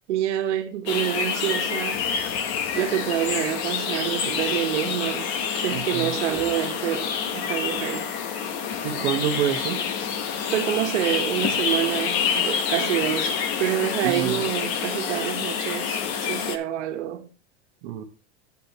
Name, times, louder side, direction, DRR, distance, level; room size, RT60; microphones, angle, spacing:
voice 1, 0.1-2.3 2.7-8.1 10.5-17.3, right 12 dB, 85° right, 1.4 m, -27 dB
sound 1, 0.9-16.6, left 7 dB, 40° left, 1.0 m, -27 dB
voice 2, 5.7-6.1 8.8-9.8 14.0-14.5 17.8-18.0, right 10 dB, 50° right, 1.3 m, -27 dB
10.0 x 8.3 x 2.9 m
supercardioid pair, 170°, 34 cm